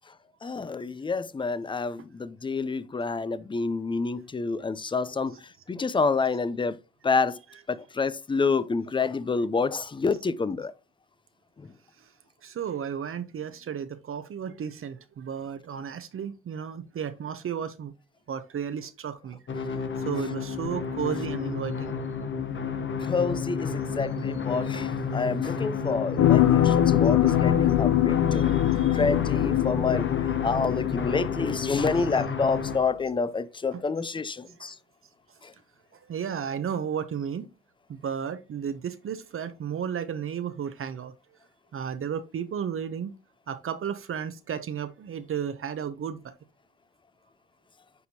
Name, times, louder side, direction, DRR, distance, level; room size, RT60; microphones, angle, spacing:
voice 1, 0.4-5.4 5.7-6.8 7.0-7.4 7.7-10.7 23.1-28.6 28.9-30.1 30.4-34.7, left 4 dB, 15° left, 0.5 m, -28 dB
voice 2, 12.4-17.9 18.3-19.4 20.0-22.0 28.3-29.0 32.0-32.1 33.7-33.8 34.6-34.7 36.1-37.5 37.9-41.1 41.7-43.1 43.5-46.3, right 8 dB, 45° right, 0.7 m, -33 dB
sound 1, 19.5-32.8, left 6 dB, 40° left, 1.0 m, -31 dB
sound 2, 26.2-32.2 32.6-32.7, left 12 dB, 70° left, 0.7 m, -23 dB
9.5 x 4.2 x 2.7 m
cardioid pair, 80°, 29 cm